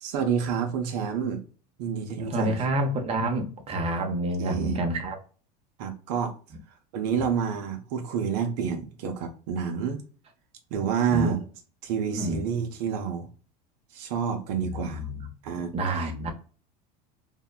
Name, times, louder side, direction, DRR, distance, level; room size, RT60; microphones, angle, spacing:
voice 1, 0.0-1.4 1.8-2.6 4.4-4.8 5.8-6.3 6.9-10.0 10.7-11.4 11.8-13.3 13.9-15.0 15.4-15.7, right 7 dB, 70° right, 0.6 m, -28 dB
voice 2, 2.2-5.2 11.1-11.3 12.1-12.4 14.7-15.3 15.7-16.3, right 1 dB, 30° right, 0.7 m, -28 dB
2.7 x 2.1 x 2.3 m
hypercardioid pair, 100°, 21 cm